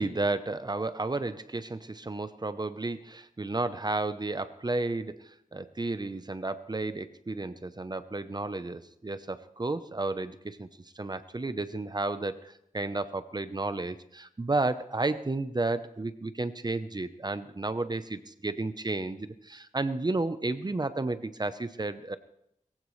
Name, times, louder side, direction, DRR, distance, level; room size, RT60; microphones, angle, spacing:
voice 1, 0.0-10.7 11.0-22.2, right 2 dB, 30° right, 12 dB, 0.8 m, -32 dB
21.5 x 15.5 x 3.3 m, 0.76 s
wide cardioid pair, 75°, 14 cm